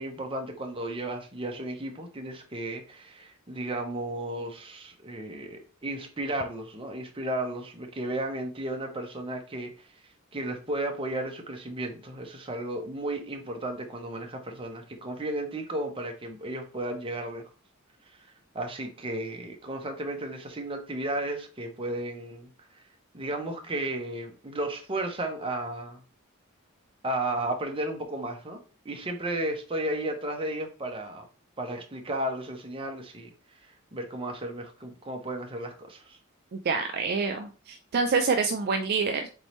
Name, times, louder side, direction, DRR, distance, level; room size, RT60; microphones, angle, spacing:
voice 1, 0.0-9.7 10.3-17.5 18.5-22.5 23.1-26.0 27.0-28.6 28.8-31.3 31.6-33.3 33.9-36.2, right 1 dB, 25° right, 3 dB, 0.8 m, -34 dB
voice 2, 36.5-39.3, right 4 dB, 50° right, 5 dB, 0.4 m, -27 dB
4.1 x 3.5 x 3.0 m, 0.36 s
head